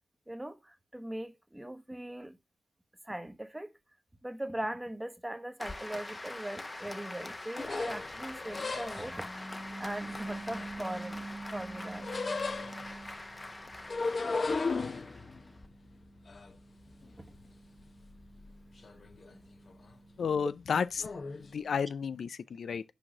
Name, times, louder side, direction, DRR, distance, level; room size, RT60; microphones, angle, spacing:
voice 1, 0.3-2.4 3.0-3.7 4.2-20.2 21.3-21.5, right 1 dB, 15° right, 1.2 m, -42 dB
Applause, 5.6-15.7, left 2 dB, 30° left, 1.0 m, -44 dB
sound 1, 7.6-9.3 10.0-11.3 11.6-13.1 13.7-17.5 17.8-18.5 18.8-19.3 19.7-19.9 21.0-21.4, left 4 dB, 55° left, 0.9 m, -36 dB
voice 2, 20.2-21.1 21.4-22.8, left 6 dB, 70° left, 0.4 m, -32 dB
6.2 x 4.6 x 6.1 m
supercardioid pair, 40°, 0 cm